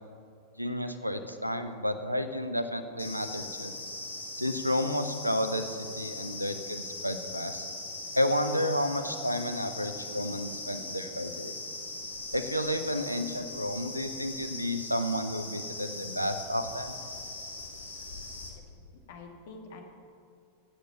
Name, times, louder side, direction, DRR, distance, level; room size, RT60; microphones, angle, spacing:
voice 1, 0.6-3.7 4.4-7.7 8.1-11.5 12.3-16.9, equal, 90° right, 10 dB, 0.8 m, -31 dB
sound 1, 3.0-18.5, left 2 dB, 75° left, 1.7 m, -40 dB
voice 2, 18.7-19.8, left 4 dB, 55° left, 3 dB, 1.9 m, -47 dB
13.0 x 8.2 x 7.0 m, 2.5 s
figure-of-eight pair, 90°, 0 cm